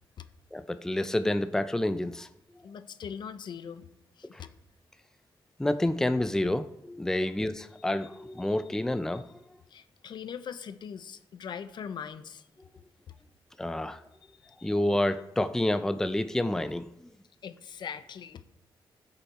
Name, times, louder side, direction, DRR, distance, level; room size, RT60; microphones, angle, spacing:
voice 1, 0.5-2.3 4.3-4.4 5.6-9.2 13.6-14.0 14.6-16.9, left 1 dB, 5° left, 11 dB, 0.5 m, -28 dB
voice 2, 2.6-3.9 4.2-4.5 7.2-7.3 9.1-9.2 9.7-12.5 14.2-14.8 17.4-18.4, left 7 dB, 65° left, 12 dB, 0.8 m, -41 dB
15.5 x 6.6 x 4.2 m, 0.88 s
cardioid pair, 95°, 8 cm